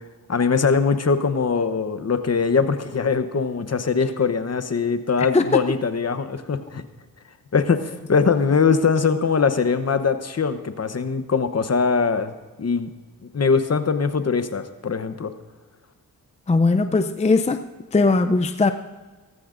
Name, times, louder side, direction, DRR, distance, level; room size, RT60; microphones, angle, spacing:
voice 1, 0.3-6.8 7.5-12.9 13.3-15.3, left 5 dB, 40° left, 10 dB, 0.9 m, -22 dB
voice 2, 16.5-17.6 17.9-18.7, left 3 dB, 20° left, 9 dB, 0.5 m, -19 dB
17.5 x 14.5 x 2.6 m, 1.3 s
cardioid pair, 70°, 37 cm